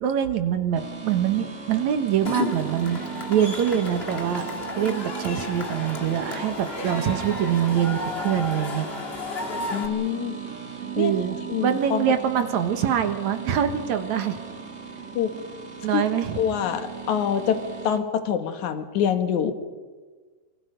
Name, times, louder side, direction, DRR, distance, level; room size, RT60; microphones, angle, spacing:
voice 1, 0.0-3.0 3.3-8.9 11.0-14.4 15.8-16.4, right 9 dB, 70° right, 8 dB, 2.6 m, -24 dB
Singing transformer, 0.7-18.0, right 6 dB, 35° right, 1.4 m, -38 dB
Cheering / Crowd, 2.2-9.9, left 2 dB, 25° left, 1.5 m, -33 dB
voice 2, 9.7-10.4 11.0-11.1 11.5-12.1 15.2-15.4 15.9-16.0 16.4-19.5, left 8 dB, 70° left, 8 dB, 2.8 m, -25 dB
27.0 x 24.5 x 5.2 m, 1.4 s
omnidirectional pair, 3.6 m